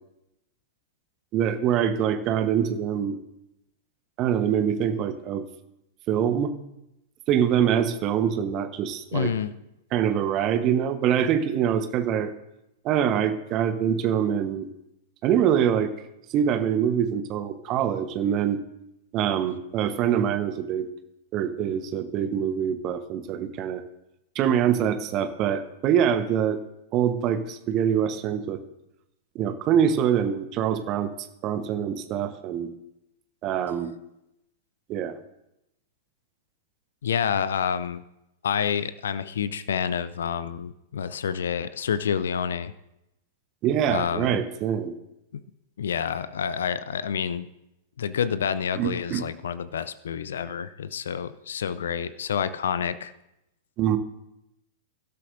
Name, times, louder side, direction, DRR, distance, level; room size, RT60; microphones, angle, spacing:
voice 1, 1.3-3.2 4.2-5.4 6.1-6.5 7.3-9.3 9.9-12.3 12.8-14.7 15.2-15.9 16.3-18.6 19.1-20.9 21.3-23.8 24.3-26.6 26.9-28.6 29.3-31.1 31.4-32.7 33.4-33.9 34.9-35.2 43.6-44.9 48.8-49.2 53.8-54.0, right 9 dB, 35° right, 10 dB, 1.0 m, -24 dB
voice 2, 9.1-9.5 37.0-38.0 38.4-42.7 43.9-44.4 45.3-45.4 45.8-47.5 48.0-53.1, left 7 dB, 60° left, 15 dB, 0.5 m, -28 dB
23.5 x 12.5 x 2.6 m, 0.86 s
figure-of-eight pair, 100°, 0 cm